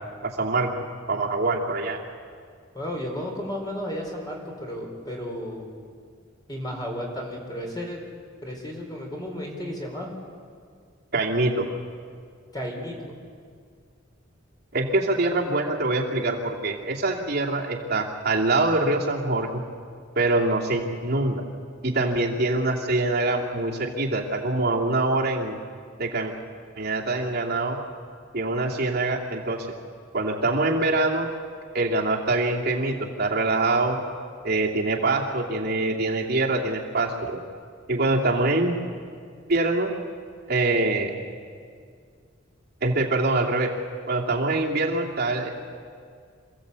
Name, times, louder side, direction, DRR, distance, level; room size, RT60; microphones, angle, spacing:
voice 1, 0.2-0.7 1.1-2.0 11.1-11.7 14.7-19.6 20.2-21.4 21.8-25.6 26.0-26.3 26.8-27.8 28.3-29.7 30.1-31.3 31.7-34.0 34.4-37.4 37.9-38.8 39.5-39.9 40.5-41.1 42.8-43.7 44.1-45.5, right 2 dB, 55° right, -3 dB, 2.7 m, -24 dB
voice 2, 2.7-5.7 6.5-8.0 8.4-10.1 12.5-13.2 15.1-15.2, equal, 20° left, 0 dB, 4.4 m, -33 dB
27.0 x 16.0 x 8.3 m, 2.1 s
head